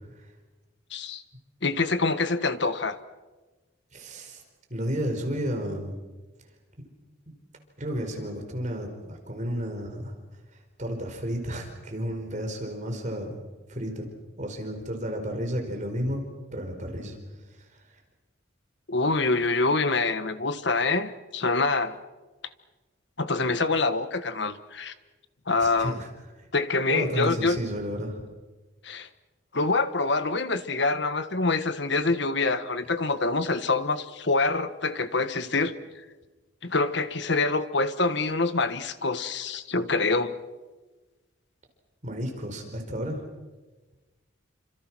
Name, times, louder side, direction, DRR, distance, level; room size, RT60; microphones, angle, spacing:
voice 1, 0.9-1.2 1.6-3.0 18.9-22.0 23.2-24.9 25.5-26.0 26.5-27.6 28.8-29.1 29.5-35.7 36.6-40.4, left 3 dB, 60° left, 11 dB, 1.4 m, -25 dB
voice 2, 3.9-4.4 4.7-6.0 7.3-7.4 7.8-10.1 10.8-13.4 13.7-14.1 14.4-16.2 16.5-17.2 25.6-26.1 26.9-28.2 42.0-43.2, equal, 40° right, 3 dB, 4.7 m, -32 dB
29.0 x 26.5 x 6.2 m, 1.2 s
head